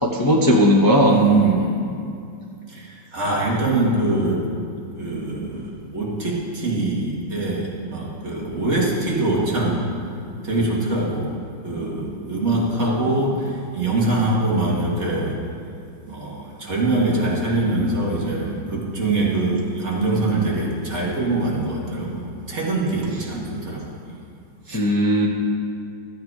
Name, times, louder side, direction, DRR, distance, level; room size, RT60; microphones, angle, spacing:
voice 1, 0.0-1.2 24.7-25.3, equal, 25° left, -1 dB, 0.4 m, -17 dB
voice 2, 1.1-1.8 2.7-4.4 5.0-9.9 10.4-11.4 11.6-15.4 16.1-23.9 24.7-24.8, right 2 dB, 35° right, -4 dB, 2.0 m, -23 dB
13.5 x 8.0 x 4.8 m, 2.4 s
omnidirectional pair, 2.1 m